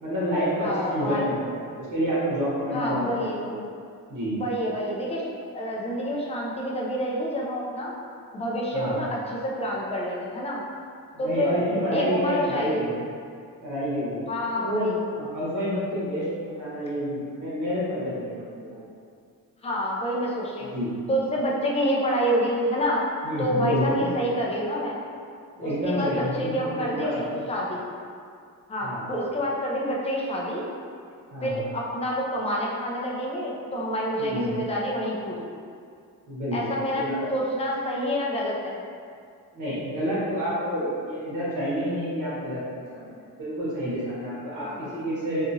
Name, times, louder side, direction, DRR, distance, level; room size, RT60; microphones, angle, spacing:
voice 1, 0.0-3.6 4.1-4.4 8.7-9.0 11.1-13.0 13.6-14.3 14.5-18.8 20.7-20.9 23.2-24.1 25.6-27.4 28.8-29.0 31.3-31.7 34.2-34.6 36.3-37.3 39.5-45.4, equal, 60° right, -9 dB, 1.2 m, -29 dB
voice 2, 0.6-1.2 2.7-3.4 4.3-5.2 5.5-7.9 8.3-9.1 9.4-10.6 11.2-11.6 11.9-12.8 14.3-15.0 19.6-20.7 21.1-23.1 23.4-25.0 25.6-27.8 28.7-30.7 31.4-35.4 36.5-37.0 37.3-38.8 44.6-44.7, equal, 20° left, -4 dB, 0.4 m, -28 dB
2.8 x 2.4 x 2.6 m, 2.3 s
wide cardioid pair, 145°, 35 cm